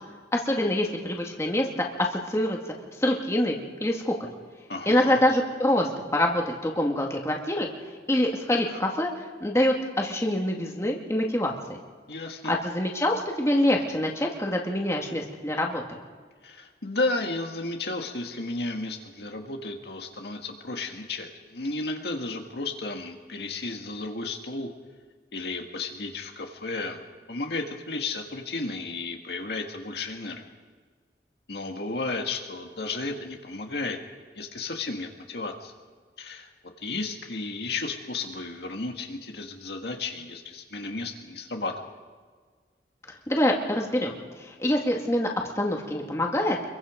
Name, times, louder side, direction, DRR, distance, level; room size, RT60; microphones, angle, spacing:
voice 1, 0.3-2.6 3.0-4.3 4.9-7.7 8.1-9.1 9.4-11.5 12.5-15.8 43.3-46.6, left 1 dB, 15° left, 0 dB, 2.1 m, -25 dB
voice 2, 4.7-5.2 12.1-12.5 16.4-24.7 25.3-27.0 27.3-30.4 31.5-34.0 34.3-35.7 36.2-36.5 36.8-41.9, left 3 dB, 70° left, 3 dB, 1.9 m, -33 dB
25.5 x 23.0 x 5.2 m, 1.5 s
head